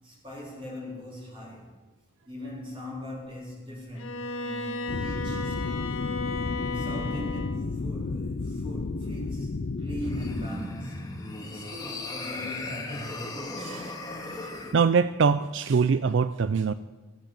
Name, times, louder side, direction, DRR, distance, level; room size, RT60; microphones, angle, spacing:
voice 1, 0.0-1.8 2.2-5.9 6.7-11.1 11.4-13.0, equal, 25° right, 4.1 m, -40 dB
Bowed string instrument, 4.0-7.7, left 3 dB, 90° left, 1.6 m, -34 dB
sound 1, 4.9-10.5, left 3 dB, 55° left, 0.5 m, -32 dB
sound 2, 10.0-14.8, left 2 dB, 20° left, 1.7 m, -37 dB
voice 2, 13.6-13.9 14.7-16.7, right 5 dB, 65° right, 0.4 m, -23 dB
15.0 x 8.8 x 8.5 m
head